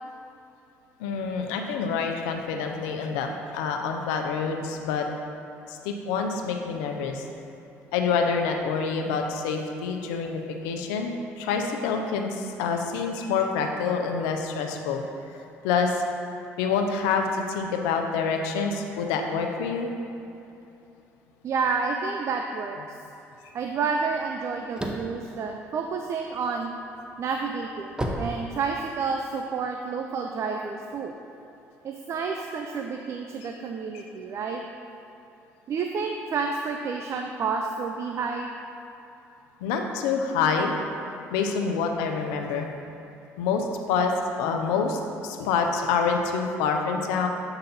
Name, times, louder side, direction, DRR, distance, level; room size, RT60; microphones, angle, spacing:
voice 1, 1.0-5.0 5.7-7.2 7.9-15.0 15.6-16.0 16.6-19.9 33.4-33.5 33.9-34.1 39.6-40.7 41.3-42.7 43.4-44.1 44.4-47.3, left 5 dB, 90° left, 3 dB, 0.6 m, -27 dB
voice 2, 21.4-22.8 23.5-26.7 27.2-31.1 31.8-34.6 35.7-38.5, right 5 dB, 50° right, 3 dB, 0.4 m, -30 dB
sound 1, 24.3-26.5 26.9-29.2, right 1 dB, 15° right, 0.7 m, -33 dB
7.9 x 4.0 x 4.1 m, 2.9 s
supercardioid pair, 75°, 6 cm